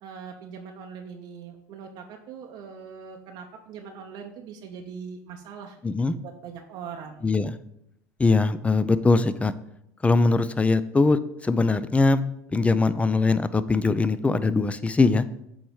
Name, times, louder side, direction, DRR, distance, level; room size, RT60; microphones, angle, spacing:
voice 1, 0.0-5.8 6.4-7.3, right 6 dB, 60° right, 2 dB, 0.7 m, -41 dB
voice 2, 5.8-6.2 7.2-7.6 8.2-9.5 10.0-12.2 12.5-15.2, left 3 dB, 15° left, 14 dB, 0.4 m, -21 dB
7.9 x 3.0 x 4.7 m, 0.78 s
hypercardioid pair, 80°, 8 cm